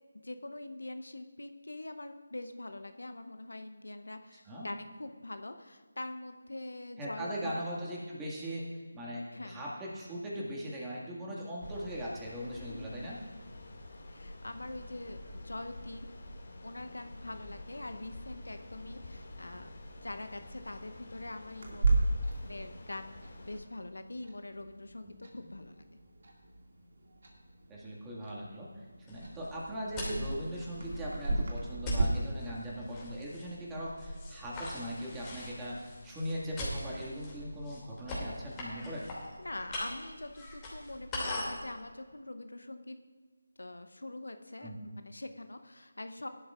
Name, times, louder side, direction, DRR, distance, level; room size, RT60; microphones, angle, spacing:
voice 1, 0.2-7.7 9.3-9.6 12.6-12.9 14.1-16.1 16.6-25.8 39.4-43.0 43.6-44.7 45.0-46.3, left 2 dB, 75° left, 8 dB, 0.8 m, -44 dB
voice 2, 7.0-8.7 8.9-13.2 25.0-25.2 27.7-28.7 29.1-39.0 44.6-44.9, equal, 10° right, -6 dB, 2.0 m, -39 dB
sound 1, 11.6-23.6, left 1 dB, 50° left, 2.1 m, -48 dB
Clock, 21.6-32.0, right 2 dB, 55° right, 2.2 m, -36 dB
sound 2, 29.1-41.7, equal, 15° left, 2.5 m, -41 dB
18.0 x 11.5 x 2.5 m, 1.5 s
figure-of-eight pair, 160°, 0 cm